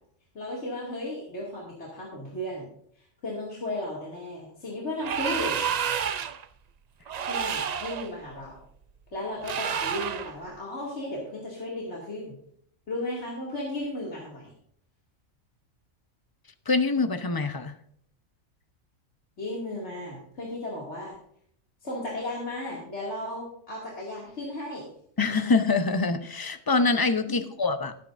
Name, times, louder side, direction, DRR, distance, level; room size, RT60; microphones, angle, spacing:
voice 1, 0.3-2.7 2.9-5.6 7.3-8.6 9.1-12.4 12.9-14.5 19.4-21.2 21.8-24.9 27.3-27.4, left 1 dB, 55° left, -4 dB, 2.7 m, -35 dB
sound 1, 5.0-6.4 7.1-8.1 9.4-10.3, right 8 dB, 85° right, 0.3 m, -29 dB
voice 2, 16.7-17.7 25.2-27.9, left 3 dB, 25° left, 9 dB, 0.5 m, -25 dB
18.5 x 9.7 x 2.6 m, 0.66 s
omnidirectional pair, 1.4 m